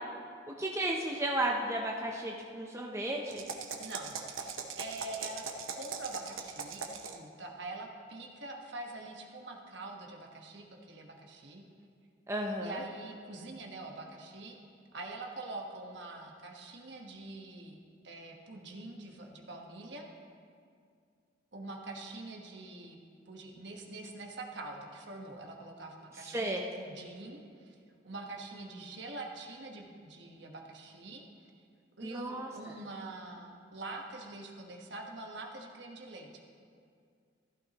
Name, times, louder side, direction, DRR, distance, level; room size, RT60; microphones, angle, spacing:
voice 1, 0.5-3.4 12.3-12.8 26.3-26.6 32.0-32.5, right 1 dB, 15° right, -1 dB, 0.6 m, -33 dB
sound 1, 3.3-7.3, right 6 dB, 85° right, 0.8 m, -40 dB
voice 2, 3.8-5.5 5.7-11.6 12.6-14.6 14.9-17.8 18.0-20.0 21.5-23.0 23.3-27.7 28.0-31.5 32.0-36.6, right 2 dB, 60° right, 1 dB, 1.2 m, -45 dB
14.5 x 12.0 x 2.9 m, 2.3 s
head